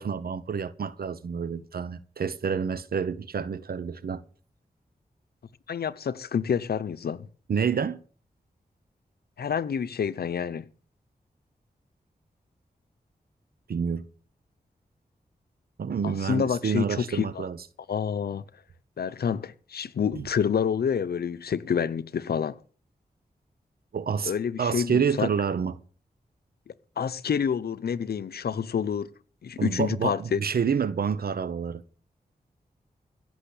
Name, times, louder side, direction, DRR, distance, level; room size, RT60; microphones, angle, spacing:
voice 1, 0.0-4.2 7.5-8.0 13.7-14.1 15.8-17.6 20.1-20.3 23.9-24.3 24.6-25.7 29.6-31.8, right 6 dB, 75° right, 0.9 m, -28 dB
voice 2, 5.7-7.3 9.4-10.7 16.0-17.5 17.9-18.5 19.0-22.6 24.2-25.3 26.7-29.1 29.4-30.4, left 7 dB, 85° left, 0.8 m, -28 dB
16.0 x 6.4 x 8.3 m
cardioid pair, 60°, 16 cm